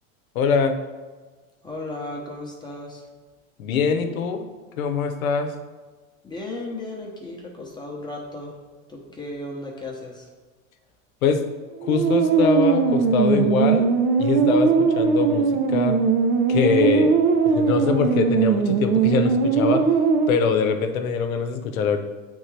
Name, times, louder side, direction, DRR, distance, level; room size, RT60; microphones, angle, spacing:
voice 1, 0.3-0.8 3.6-4.4 4.7-5.6 11.2-11.5 11.8-13.9 14.2-16.0 16.5-17.2 17.4-19.9 20.3-22.0, left 6 dB, 80° left, 7 dB, 0.8 m, -23 dB
voice 2, 1.6-3.0 6.2-8.5 8.9-10.3, left 2 dB, 10° left, -1 dB, 0.9 m, -35 dB
sound 1, 11.8-20.3, right 5 dB, 55° right, 0.8 m, -20 dB
8.5 x 3.6 x 3.3 m, 1.3 s
supercardioid pair, 125°, 41 cm